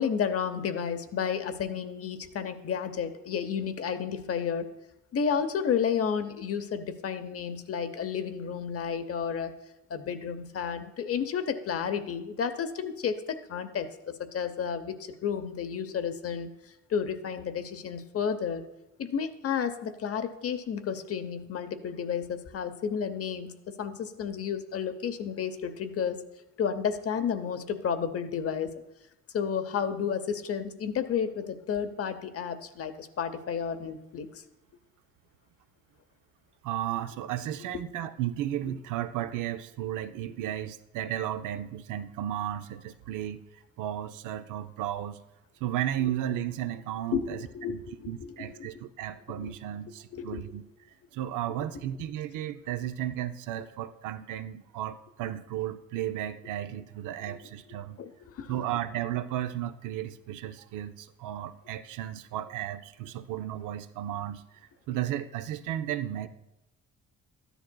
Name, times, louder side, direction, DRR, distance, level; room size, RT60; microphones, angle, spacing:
voice 1, 0.0-4.7 5.1-9.5 9.9-16.5 16.9-18.6 19.0-26.2 26.6-28.7 29.3-34.3 37.7-37.8 47.1-48.7 49.4-49.5 50.1-50.4 57.3-57.4 58.0-58.5, left 7 dB, 50° left, 10 dB, 0.8 m, -32 dB
voice 2, 36.6-43.4 43.8-45.2 45.6-50.6 51.1-58.0 58.5-64.4 64.9-66.3, right 12 dB, 90° right, 10 dB, 0.5 m, -34 dB
13.0 x 10.0 x 2.2 m, 0.91 s
cardioid pair, 90°, 30 cm